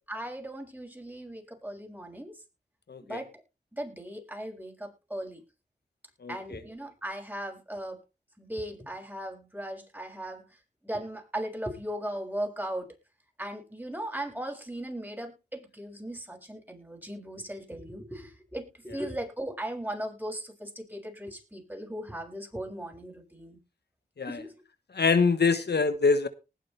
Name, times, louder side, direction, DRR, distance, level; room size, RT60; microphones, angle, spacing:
voice 1, 0.1-2.3 3.0-3.4 3.7-5.4 6.3-8.0 8.4-10.5 10.8-13.0 13.4-23.6 24.3-24.5 25.5-25.6, right 1 dB, 10° right, 7.0 m, -38 dB
voice 2, 2.9-3.2 6.2-6.6 24.2-24.4 24.9-26.3, left 4 dB, 65° left, 1.3 m, -25 dB
20.0 x 7.7 x 3.4 m
cardioid pair, 45°, 18 cm